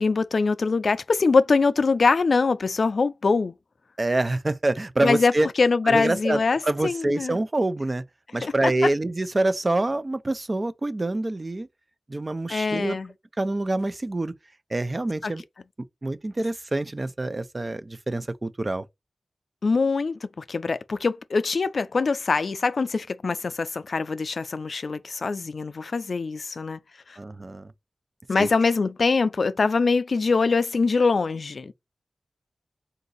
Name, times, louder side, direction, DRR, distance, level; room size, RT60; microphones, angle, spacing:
voice 1, 0.0-3.5 5.0-7.4 8.4-8.7 12.5-13.1 15.2-15.3 19.6-26.8 27.1-27.2 28.3-31.7, left 4 dB, 70° left, 0.3 m, -23 dB
voice 2, 4.0-5.5 5.9-8.0 8.3-11.7 12.1-13.0 13.4-14.3 14.7-15.4 16.0-18.8 27.2-27.7 28.3-28.5, right 2 dB, 35° right, 0.4 m, -26 dB
3.9 x 2.6 x 3.8 m
wide cardioid pair, 60°, 0 cm